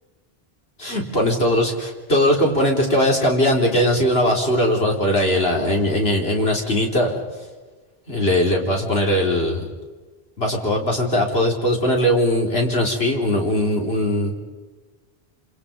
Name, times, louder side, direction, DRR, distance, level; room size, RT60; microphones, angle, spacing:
voice 1, 0.8-7.2 8.1-9.6 10.4-14.3, left 1 dB, 70° left, 0 dB, 4.4 m, -20 dB
27.0 x 27.0 x 5.3 m, 1.3 s
omnidirectional pair, 1.1 m